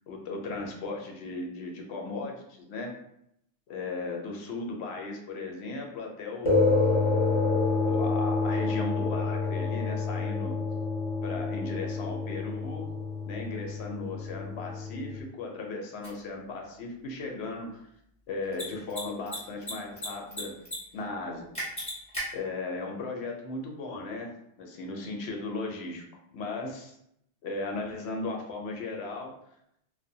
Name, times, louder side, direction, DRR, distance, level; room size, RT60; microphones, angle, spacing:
voice 1, 0.1-2.9 3.7-6.7 7.8-10.6 11.2-12.9 13.3-17.8 18.3-20.5 20.9-21.5 22.3-24.3 24.6-26.0 26.3-27.0 27.4-29.3, left 3 dB, 70° left, 1 dB, 0.8 m, -36 dB
sound 1, 6.4-15.2, left 3 dB, 40° left, 0.6 m, -28 dB
Mechanisms, 16.0-16.1 18.4-18.6 18.9-19.0 19.3-20.1 20.3-20.8 21.0-21.1 21.5-22.2, equal, 5° left, 1.0 m, -34 dB
2.7 x 2.1 x 2.6 m, 0.75 s
omnidirectional pair, 1.2 m